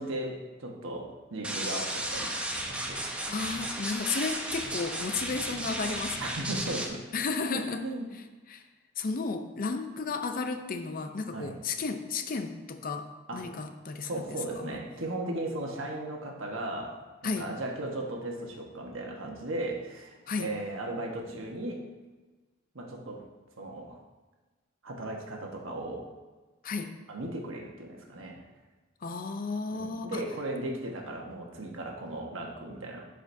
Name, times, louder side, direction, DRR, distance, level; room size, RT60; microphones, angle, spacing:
voice 1, 0.0-3.5 6.2-7.0 7.4-8.1 11.3-11.5 13.3-13.5 14.0-21.8 22.7-23.2 23.6-24.0 24.8-26.1 27.1-28.4 29.7-33.0, right 1 dB, 80° right, 1 dB, 1.2 m, -37 dB
sound 1, 1.4-6.9, right 1 dB, 5° right, 0.7 m, -34 dB
voice 2, 3.3-6.3 7.1-7.8 8.1-8.2 8.5-8.6 9.0-14.8 17.2-17.5 20.3-20.5 26.6-26.9 29.0-30.2, left 4 dB, 45° left, 7 dB, 0.5 m, -33 dB
11.5 x 5.0 x 2.6 m, 1.3 s
head